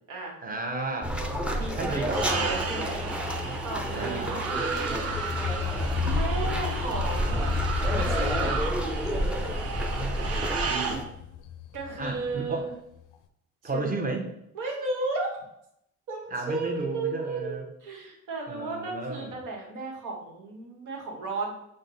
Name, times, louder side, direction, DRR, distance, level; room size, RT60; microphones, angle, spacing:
voice 1, 0.4-1.2 1.8-2.6 3.0-3.1 3.9-4.4 10.0-11.0 12.0-12.7 13.6-14.3 16.3-17.7 18.5-19.3, right 3 dB, 30° right, 3 dB, 0.9 m, -33 dB
sound 1, 1.0-11.0, equal, 5° right, 0.5 m, -30 dB
voice 2, 1.4-3.1 3.6-5.2 5.9-7.5 7.9-8.6 11.7-12.7 13.7-13.9 14.5-15.3 16.1-21.5, right 3 dB, 85° right, 0 dB, 1.2 m, -34 dB
sound 2, 2.1-11.0, right 5 dB, 55° right, 0.7 m, -33 dB
sound 3, 4.7-12.6 12.9-13.2, left 10 dB, 80° left, 0.5 m, -34 dB
5.2 x 2.2 x 3.9 m, 0.78 s
cardioid pair, 90°, 30 cm